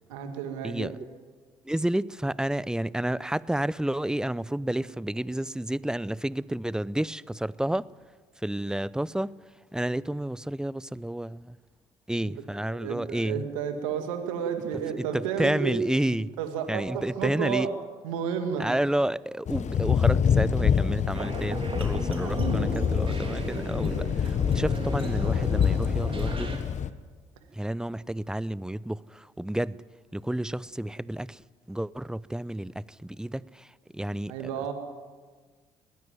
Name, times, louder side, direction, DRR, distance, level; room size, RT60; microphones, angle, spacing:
voice 1, 0.1-0.9 12.7-15.8 16.4-17.7 18.0-18.7 22.2-22.7 34.3-34.7, right 7 dB, 85° right, 2.2 m, -31 dB
voice 2, 0.6-1.0 1.6-7.9 8.4-9.3 9.7-11.6 12.1-13.5 15.0-16.3 16.7-17.7 18.6-26.6 27.5-29.8 30.1-31.4 31.7-34.7, right 1 dB, 5° right, 0.6 m, -30 dB
Thunder / Rain, 19.5-26.9, left 7 dB, 45° left, 1.1 m, -26 dB
sound 1, 21.1-26.6, right 3 dB, 35° right, 3.6 m, -36 dB
20.0 x 15.5 x 9.3 m
hypercardioid pair, 55°, 16 cm